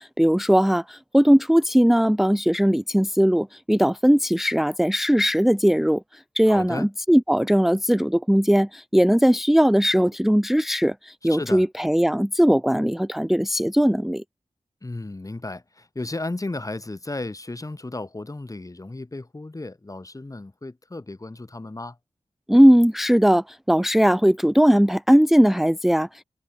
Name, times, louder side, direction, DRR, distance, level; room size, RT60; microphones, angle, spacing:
voice 1, 0.0-14.2 22.5-26.2, equal, ahead, 0.6 m, -19 dB
voice 2, 6.5-6.9 11.3-11.6 14.8-22.0, left 2 dB, 25° left, 1.6 m, -34 dB
wide cardioid pair, 80°, 13 cm